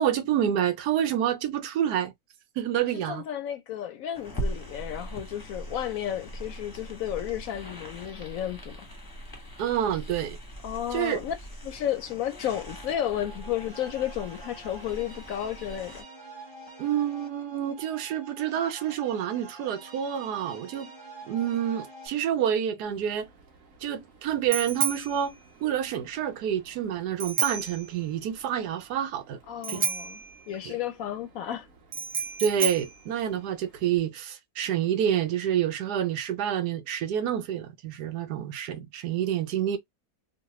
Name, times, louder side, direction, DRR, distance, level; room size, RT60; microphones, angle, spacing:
voice 1, 0.0-2.1 2.6-3.2 9.6-10.4 10.9-11.2 16.8-20.9 21.3-23.3 23.8-29.4 29.7-29.8 30.6-30.7 32.4-39.8, right 10 dB, 80° right, 1.2 m, -28 dB
voice 2, 3.1-8.9 10.6-11.3 11.6-16.0 29.5-30.2 30.5-31.7, left 11 dB, 70° left, 0.9 m, -32 dB
sound 1, 4.1-16.0, right 1 dB, 20° left, 0.7 m, -40 dB
sound 2, 12.5-22.1, right 3 dB, 20° right, 0.9 m, -47 dB
Bicycle bell, 22.8-34.0, right 6 dB, 55° right, 1.3 m, -34 dB
3.2 x 2.2 x 2.9 m
omnidirectional pair, 1.7 m